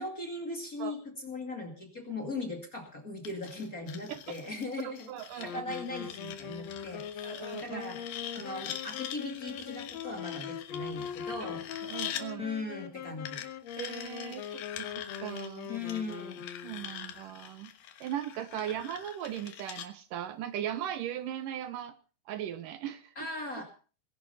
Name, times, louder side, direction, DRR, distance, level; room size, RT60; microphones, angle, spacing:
voice 1, 0.0-5.1 5.4-8.1 8.3-11.7 12.4-13.4 15.7-16.4 18.5-18.7 23.2-23.6, left 3 dB, 30° left, 3 dB, 2.1 m, -39 dB
sound 1, 3.2-12.3 13.3-19.9, left 10 dB, 85° left, 3.2 m, -44 dB
voice 2, 4.8-5.8 7.2-7.8 11.8-12.5 13.8-15.7 16.6-17.7 18.0-22.0 22.3-23.1, right 11 dB, 75° right, 12 dB, 2.4 m, -38 dB
Wind instrument woodwind instrument, 5.4-17.1, left 8 dB, 60° left, 2.0 m, -41 dB
20.0 x 11.0 x 5.6 m, 0.39 s
omnidirectional pair, 4.1 m